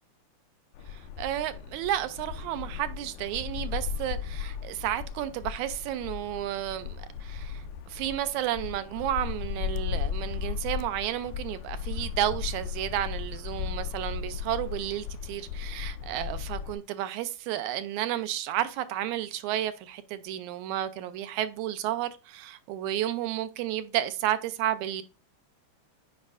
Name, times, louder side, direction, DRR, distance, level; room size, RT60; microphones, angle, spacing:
sound 1, 0.7-16.7, left 8 dB, 85° left, 2.0 m, -36 dB
voice 1, 0.9-25.0, right 12 dB, 80° right, 1.9 m, -32 dB
8.2 x 5.1 x 2.5 m
omnidirectional pair, 3.5 m